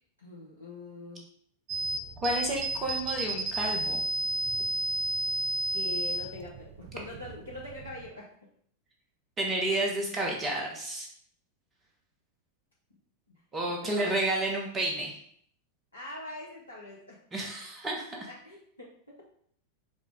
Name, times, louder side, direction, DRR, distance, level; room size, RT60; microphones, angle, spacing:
voice 1, 0.2-1.2 5.7-8.3 13.8-14.1 15.9-17.2 18.3-19.2, left 2 dB, 80° left, -4 dB, 0.8 m, -43 dB
sound 1, 1.7-8.1, right 2 dB, 45° right, 0.4 m, -32 dB
voice 2, 2.2-4.0 9.4-11.1 13.5-15.2 17.3-18.3, right 1 dB, 20° right, -1 dB, 1.0 m, -31 dB
5.2 x 2.4 x 3.7 m, 0.65 s
figure-of-eight pair, 90°, 0 cm